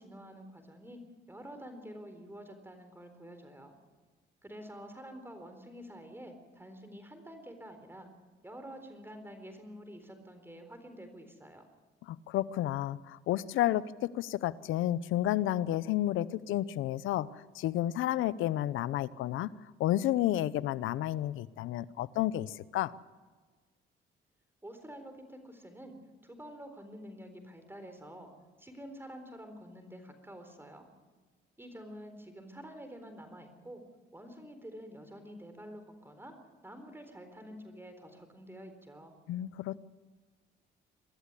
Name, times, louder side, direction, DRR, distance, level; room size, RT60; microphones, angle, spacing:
voice 1, 0.0-3.8 4.4-8.1 8.4-11.7 24.6-26.0 26.2-28.3 28.6-30.9 31.6-33.8 34.1-36.4 36.6-39.1, equal, 10° right, 7 dB, 4.0 m, -48 dB
voice 2, 12.1-17.3 17.6-19.5 19.8-22.9 39.3-39.8, left 13 dB, 85° left, 18 dB, 0.7 m, -31 dB
23.0 x 14.0 x 9.8 m, 1.3 s
cardioid pair, 90°, 20 cm